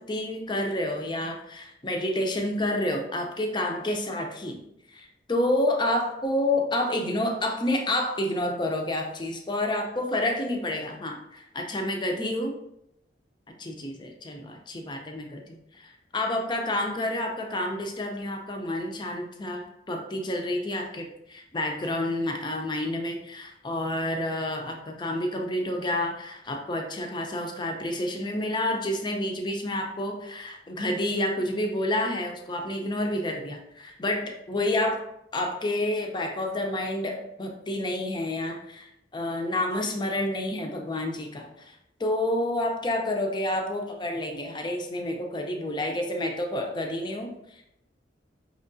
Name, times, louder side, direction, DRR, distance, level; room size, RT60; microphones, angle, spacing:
voice 1, 0.0-4.6 4.9-12.5 13.6-15.4 15.8-35.0 35.3-47.6, left 1 dB, 25° left, 3 dB, 0.5 m, -29 dB
5.4 x 3.1 x 2.6 m, 0.81 s
head